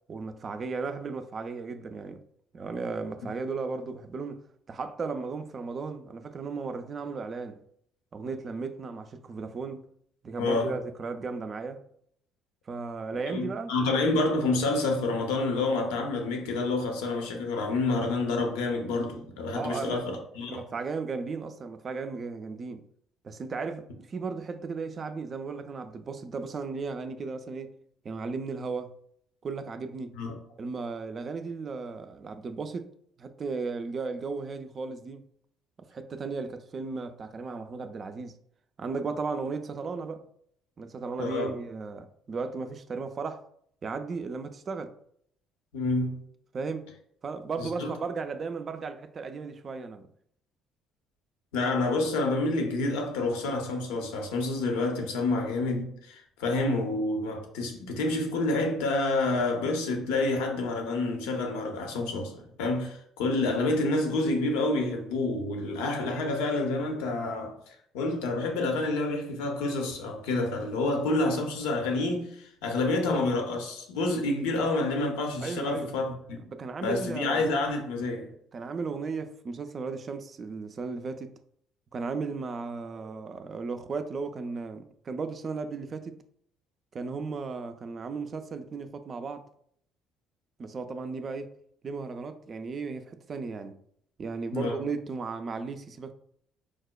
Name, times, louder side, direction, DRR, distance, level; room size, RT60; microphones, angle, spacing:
voice 1, 0.1-2.2 2.5-7.6 8.1-9.9 10.2-11.8 12.7-13.7 19.5-20.0 20.5-22.8 23.2-27.7 28.0-28.9 29.4-30.1 30.6-32.9 33.2-35.2 35.8-38.4 38.8-40.3 40.8-43.4 43.8-44.9 46.5-46.9 47.2-50.1 75.4-75.9 76.3-77.5 78.5-81.3 81.9-86.2 86.9-89.4 90.6-91.5 91.8-93.8 94.2-96.1, right 4 dB, 45° right, 0.3 m, -35 dB
voice 2, 10.4-10.7 13.3-20.6 30.1-30.4 41.2-41.5 45.7-46.2 47.6-47.9 51.5-76.4 76.8-78.3 94.5-94.7, left 2 dB, 80° left, 0.6 m, -28 dB
4.7 x 2.1 x 2.2 m
hypercardioid pair, 60°, 0 cm